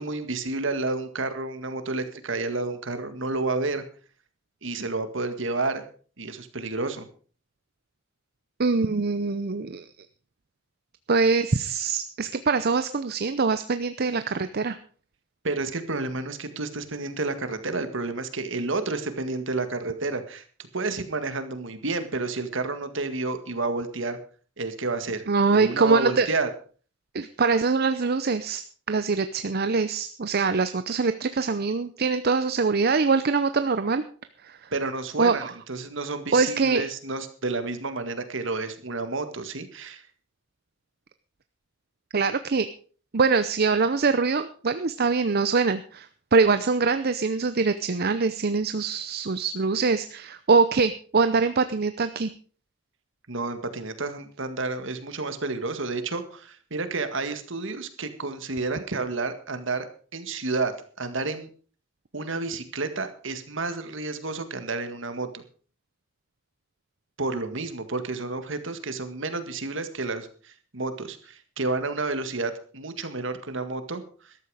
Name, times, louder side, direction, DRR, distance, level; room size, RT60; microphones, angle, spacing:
voice 1, 0.0-3.8 4.6-5.9 6.2-7.1 15.4-20.4 20.7-24.2 24.6-25.2 25.5-26.5 34.7-35.4 35.7-40.0 53.3-61.5 62.1-65.4 67.2-74.4, right 3 dB, 65° right, 9 dB, 1.9 m, -30 dB
voice 2, 8.6-9.8 11.1-14.8 25.3-26.3 27.1-28.6 28.9-34.0 34.4-34.7 35.2-35.5 36.3-36.8 42.1-42.7 43.1-52.3, right 4 dB, 50° right, 11 dB, 0.7 m, -23 dB
14.0 x 12.5 x 4.9 m, 0.41 s
head